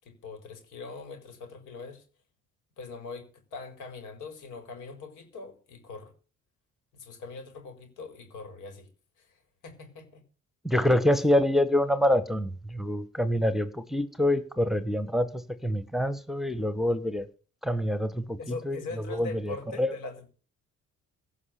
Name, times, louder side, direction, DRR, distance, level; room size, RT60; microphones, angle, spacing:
voice 1, 0.0-2.0 2.8-6.1 6.9-8.9 9.2-10.2 18.4-20.3, left 4 dB, 90° left, 5.0 m, -42 dB
voice 2, 10.6-17.3 17.6-18.4 18.7-18.8 19.1-19.9, left 1 dB, ahead, 1.3 m, -26 dB
17.0 x 6.0 x 8.4 m
cardioid pair, 90°, 30 cm